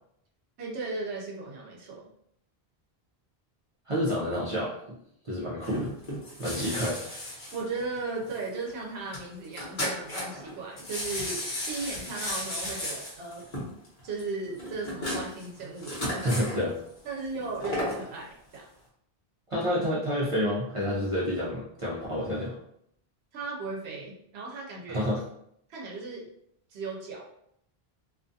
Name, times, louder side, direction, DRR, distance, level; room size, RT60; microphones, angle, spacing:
voice 1, 0.6-2.1 7.5-13.5 14.0-16.4 17.0-18.7 23.3-25.1 25.7-26.3 26.7-27.3, right 3 dB, 90° right, -2 dB, 0.9 m, -36 dB
voice 2, 3.9-4.8 5.2-5.9 6.4-7.0 16.2-16.7 19.5-22.5 24.9-25.2, equal, 40° right, -8 dB, 0.5 m, -28 dB
sound 1, 5.6-8.4 8.7-8.8 9.1-9.2 9.4-10.5 10.8-16.6 17.4-18.0 18.5-18.6, left 1 dB, 40° left, 1.0 m, -34 dB
2.5 x 2.3 x 2.6 m, 0.72 s
omnidirectional pair, 1.0 m